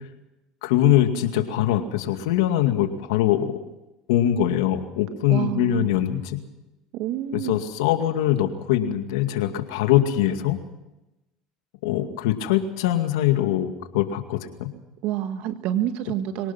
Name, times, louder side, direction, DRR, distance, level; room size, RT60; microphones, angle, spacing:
voice 1, 0.6-3.5 4.1-6.4 7.3-10.6 11.8-14.7, left 11 dB, 85° left, 7 dB, 2.2 m, -22 dB
voice 2, 5.3-6.0 6.9-7.6 15.0-16.5, right 11 dB, 65° right, 9 dB, 1.8 m, -28 dB
24.5 x 18.5 x 6.0 m, 0.96 s
supercardioid pair, 90°, 2 cm